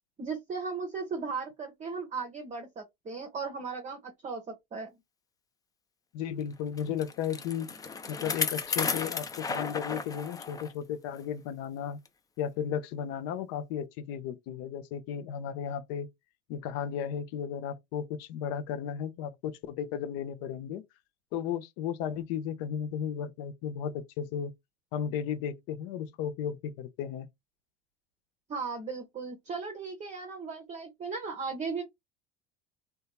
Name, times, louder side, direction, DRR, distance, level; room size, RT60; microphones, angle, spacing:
voice 1, 0.2-5.0 28.5-31.8, right 4 dB, 25° right, 0.8 m, -37 dB
voice 2, 6.1-7.7 8.1-12.0 12.4-16.1 16.5-20.8 21.3-24.5 24.9-27.3, left 8 dB, 55° left, 0.6 m, -34 dB
Bicycle, 6.8-10.7 11.1-11.2 12.0-12.1, left 5 dB, 15° left, 0.3 m, -34 dB
2.8 x 2.3 x 2.3 m
hypercardioid pair, 75°, 30 cm